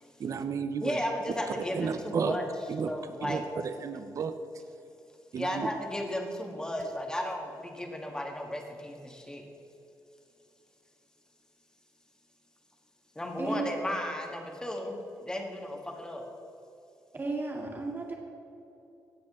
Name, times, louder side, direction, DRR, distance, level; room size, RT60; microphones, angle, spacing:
voice 1, 0.2-1.0 1.5-2.3 2.7-2.9 3.2-4.3 5.3-5.7, right 6 dB, 50° right, 9 dB, 0.6 m, -32 dB
voice 2, 0.8-2.4 2.8-3.4 5.4-9.4 13.1-16.3, left 1 dB, 10° left, 2 dB, 1.5 m, -34 dB
voice 3, 13.4-13.7 17.1-18.2, right 3 dB, 30° right, -1 dB, 2.1 m, -34 dB
17.0 x 7.7 x 3.7 m, 2.8 s
cardioid pair, 110°, 7 cm